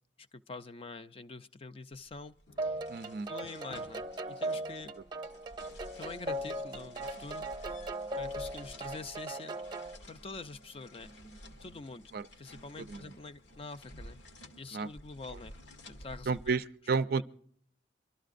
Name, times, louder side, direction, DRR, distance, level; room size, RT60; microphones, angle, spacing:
voice 1, 0.2-2.3 2.6-2.8 3.3-4.9 5.9-7.5 8.2-9.6 10.1-11.1 11.6-12.1 12.4-14.2 14.6-15.6 15.8-16.6 17.1-17.2, left 3 dB, 30° left, 0.4 m, -45 dB
sound 1, 1.9-16.7, left 1 dB, 75° left, 1.1 m, -53 dB
sound 2, 2.6-10.0, right 1 dB, 25° right, 0.7 m, -38 dB
voice 2, 2.9-3.3 12.1-12.3 12.9-13.1 14.7-14.9 16.3-17.2, right 4 dB, 55° right, 0.4 m, -31 dB
25.0 x 12.5 x 2.5 m
head